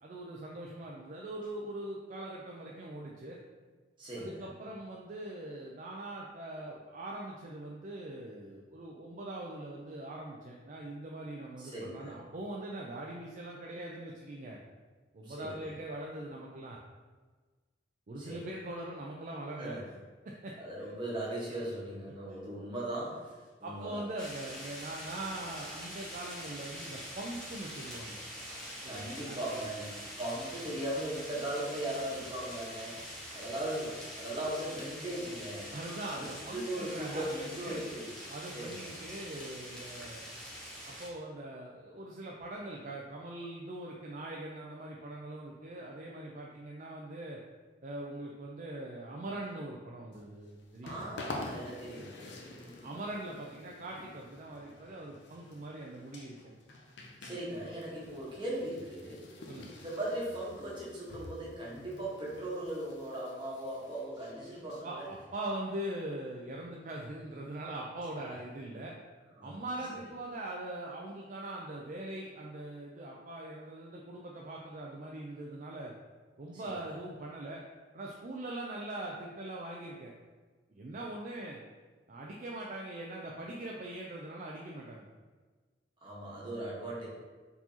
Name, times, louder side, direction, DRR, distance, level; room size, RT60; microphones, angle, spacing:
voice 1, 0.0-3.4 4.2-14.6 15.1-16.8 18.1-19.8 20.2-20.5 20.8-20.9 23.6-28.2 28.8-29.7 35.7-37.8 38.3-40.3 40.9-47.4 47.8-51.1 52.8-56.5 59.5-59.8 64.8-69.0 69.4-75.9 76.4-77.6 77.9-80.1 80.7-81.6 82.1-85.1, right 1 dB, 45° right, -2 dB, 0.4 m, -42 dB
voice 2, 4.0-4.5 11.6-12.2 15.2-15.7 18.2-18.5 19.6-19.8 20.6-24.0 28.9-33.0 33.3-35.7 36.1-38.1 38.5-38.9 50.8-53.0 57.2-59.3 59.8-65.1 68.3-68.4 69.4-70.0 76.6-76.7 86.0-87.1, right 1 dB, 30° right, -6 dB, 1.3 m, -39 dB
sound 1, 24.2-41.1, equal, 5° left, 0.9 m, -45 dB
sound 2, 50.1-65.3, left 2 dB, 85° left, 0.6 m, -49 dB
4.5 x 4.1 x 2.8 m, 1.4 s
head